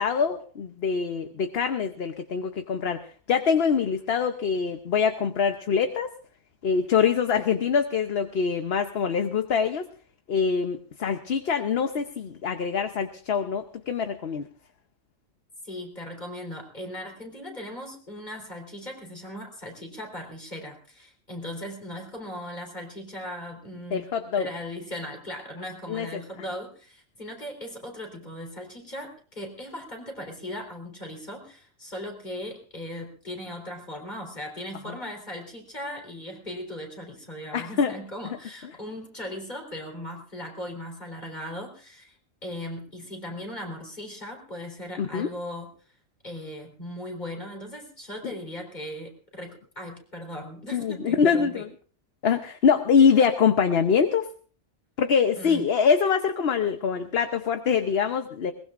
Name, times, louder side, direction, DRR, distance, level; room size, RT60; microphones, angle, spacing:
voice 1, 0.0-3.0 3.3-6.1 6.6-9.9 10.3-14.4 23.9-24.5 25.9-26.2 37.5-37.9 45.0-45.3 50.7-51.6 52.2-54.3 55.0-58.5, left 6 dB, 55° left, 7 dB, 1.0 m, -24 dB
voice 2, 15.6-24.1 24.4-45.7 46.2-51.7 55.4-55.7, left 1 dB, 35° left, 2 dB, 4.0 m, -38 dB
22.0 x 20.0 x 2.5 m, 0.42 s
omnidirectional pair, 1.4 m